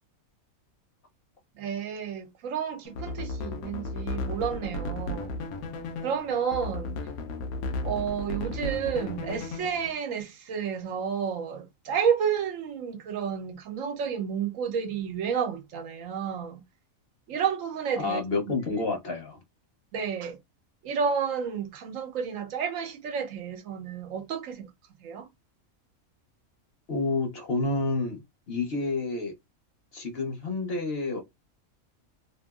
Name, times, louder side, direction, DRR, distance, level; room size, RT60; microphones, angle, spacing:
voice 1, 1.6-5.4 6.0-7.0 7.8-16.6 17.3-18.4 19.9-20.4 20.8-24.7 25.0-25.3, right 7 dB, 70° right, 1.0 m, -31 dB
sound 1, 2.8-9.9, left 2 dB, 90° left, 1.1 m, -34 dB
voice 2, 18.0-19.4 26.9-28.2 28.5-29.3 29.9-31.2, left 3 dB, 50° left, 0.9 m, -29 dB
2.8 x 2.5 x 2.3 m
omnidirectional pair, 1.5 m